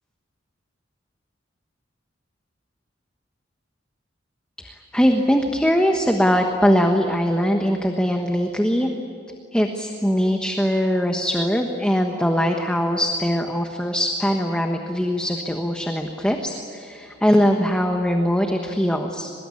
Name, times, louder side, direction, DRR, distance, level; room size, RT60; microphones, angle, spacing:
voice 1, 4.6-8.9 9.5-19.3, equal, 5° left, 3 dB, 1.3 m, -21 dB
24.0 x 21.5 x 9.8 m, 2.4 s
head